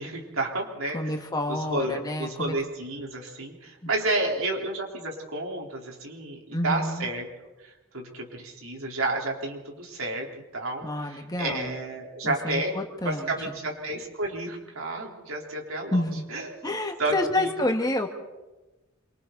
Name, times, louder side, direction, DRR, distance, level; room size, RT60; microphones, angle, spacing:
voice 1, 0.0-1.1 1.5-7.3 7.6-10.3 10.5-12.8 13.0-16.0 16.3-17.7, right 2 dB, 90° right, 0 dB, 4.0 m, -31 dB
voice 2, 0.9-2.5 6.5-7.1 10.8-11.7 12.2-13.5 15.9-16.2 16.6-18.1, left 1 dB, 20° left, 4 dB, 1.7 m, -29 dB
27.0 x 24.5 x 4.1 m, 1.1 s
head